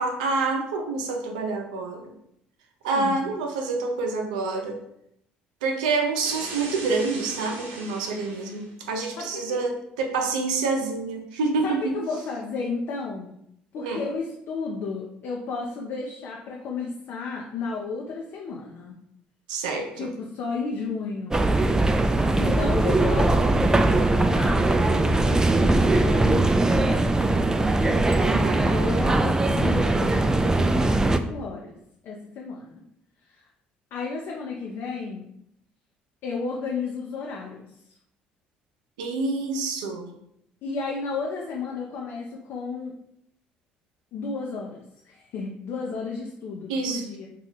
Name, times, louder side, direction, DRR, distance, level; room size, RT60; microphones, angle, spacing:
voice 1, 0.0-2.1 2.8-4.8 5.6-11.8 13.8-14.0 19.5-20.1 28.2-28.9 39.0-40.1 46.7-47.0, right 3 dB, 90° right, 3 dB, 0.5 m, -27 dB
sound 1, 6.2-8.7, right 3 dB, 65° right, 0.9 m, -39 dB
voice 2, 9.2-9.6 11.6-13.3 13.7-18.9 19.9-21.4 22.4-27.2 28.6-31.8 32.0-32.7 33.3-33.4 33.9-35.3 36.2-37.6 40.6-42.9 44.1-44.8 45.0-47.3, left 4 dB, 65° left, -2 dB, 0.5 m, -33 dB
sound 2, 21.3-31.2, right 2 dB, 15° right, 0.3 m, -21 dB
2.9 x 2.4 x 3.9 m, 0.75 s
hypercardioid pair, 65°, 4 cm